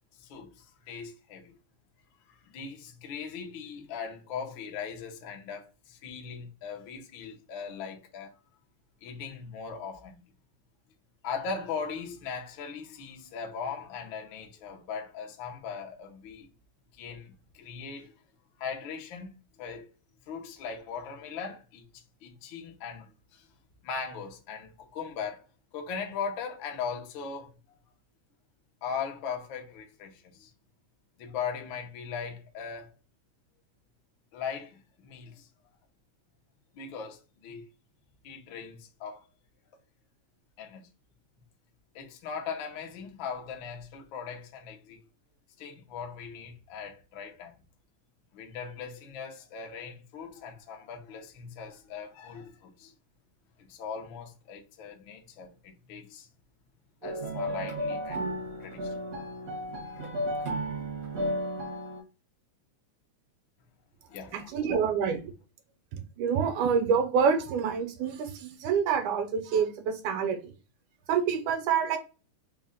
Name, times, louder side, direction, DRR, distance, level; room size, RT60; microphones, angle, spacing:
voice 1, 0.1-1.6 2.3-8.3 9.0-10.2 11.2-16.5 16.9-18.1 18.6-19.3 19.6-19.9 20.3-23.5 23.8-25.4 25.7-27.5 28.8-30.5 31.2-32.9 34.3-35.5 36.7-37.7 38.2-39.2 40.6-40.9 41.9-45.0 45.6-47.6 48.3-52.9 53.6-56.3 57.0-58.3 58.6-59.0 59.8-60.2 64.1-64.8, left 6 dB, 80° left, 1.1 m, -39 dB
sound 1, 57.0-62.0, equal, 60° right, 0.8 m, -33 dB
voice 2, 64.3-65.3 65.9-70.5 71.1-72.0, right 6 dB, 85° right, 2.2 m, -27 dB
5.1 x 2.1 x 3.7 m
omnidirectional pair, 3.4 m